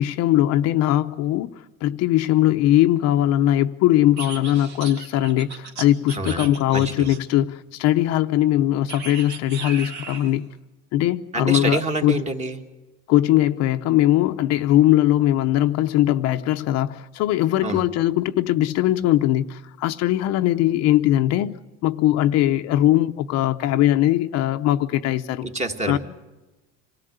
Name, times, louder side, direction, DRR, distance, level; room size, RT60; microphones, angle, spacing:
voice 1, 0.0-1.5 1.8-10.5 10.9-12.2 13.1-21.5 21.8-25.5 25.9-26.0, left 13 dB, 55° left, 0.8 m, -20 dB
sound 1, 4.2-7.4 8.9-10.4, right 6 dB, 60° right, 2.4 m, -36 dB
voice 2, 6.2-7.1 11.3-12.6 17.6-17.9 25.4-26.0, right 2 dB, 20° right, 1.7 m, -27 dB
26.0 x 17.5 x 8.0 m
cardioid pair, 160°, 31 cm